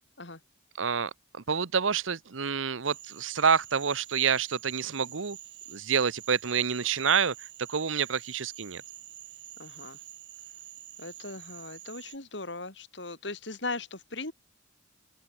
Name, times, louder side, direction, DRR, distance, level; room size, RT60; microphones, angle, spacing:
voice 1, 0.8-5.4 5.7-7.3 7.7-8.8, right 6 dB, 85° right, 0.9 m, -28 dB
Cricket / Frog, 2.8-12.2, right 12 dB, 65° right, 6.7 m, -47 dB
voice 2, 9.6-10.0 11.0-14.3, left 3 dB, 65° left, 4.2 m, -38 dB
open air
head